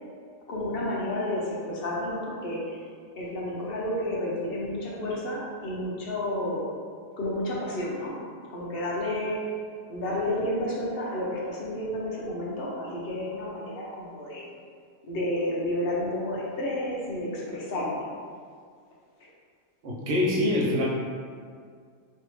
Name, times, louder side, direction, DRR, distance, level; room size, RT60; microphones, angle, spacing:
voice 1, 0.5-2.8 3.1-6.7 7.2-8.1 8.5-9.4 9.9-14.5 15.1-18.0, left 1 dB, 55° left, -5 dB, 0.8 m, -31 dB
voice 2, 19.8-20.9, left 1 dB, 60° right, -5 dB, 0.7 m, -24 dB
3.2 x 2.7 x 3.0 m, 2.1 s
omnidirectional pair, 1.4 m